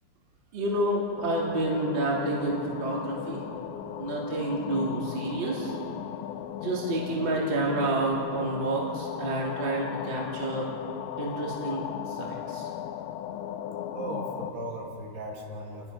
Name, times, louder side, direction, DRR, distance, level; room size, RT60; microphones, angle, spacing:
voice 1, 0.5-3.5 4.0-5.8 6.6-10.7 11.2-11.8 12.1-12.7, right 2 dB, 30° right, -4 dB, 3.3 m, -29 dB
sound 1, 1.2-14.5, left 10 dB, 90° left, 3.0 m, -37 dB
voice 2, 13.9-15.9, right 1 dB, 65° right, -1 dB, 4.2 m, -37 dB
30.0 x 21.0 x 5.7 m, 2.9 s
omnidirectional pair, 5.2 m